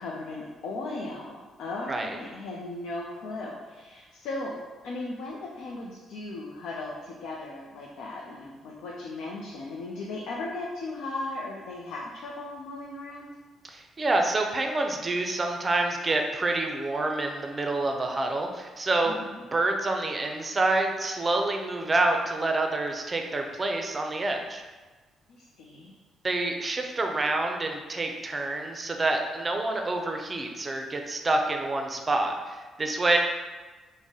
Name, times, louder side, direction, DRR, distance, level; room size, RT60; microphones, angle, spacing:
voice 1, 0.0-4.6 4.8-13.3 19.1-19.4 25.3-26.0, left 2 dB, 85° left, -3 dB, 0.4 m, -37 dB
voice 2, 13.6-19.2 19.5-24.6 26.2-33.2, right 2 dB, 30° right, 3 dB, 0.4 m, -27 dB
3.9 x 2.1 x 3.6 m, 1.3 s
cardioid pair, 90°, 0 cm